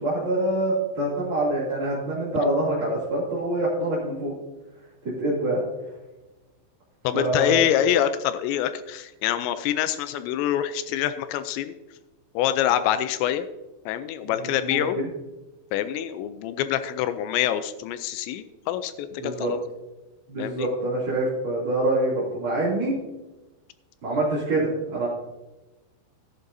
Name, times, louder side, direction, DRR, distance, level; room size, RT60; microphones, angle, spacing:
voice 1, 0.0-4.3 5.2-5.6 7.1-7.6 14.6-14.8 19.2-19.5 20.3-22.9 24.0-25.1, right 1 dB, 35° right, -9 dB, 2.8 m, -25 dB
voice 2, 7.0-11.7 12.4-13.5 13.9-15.0 15.7-19.6 20.4-20.7, left 11 dB, 85° left, 11 dB, 2.8 m, -25 dB
14.5 x 11.5 x 2.7 m, 1.1 s
omnidirectional pair, 5.3 m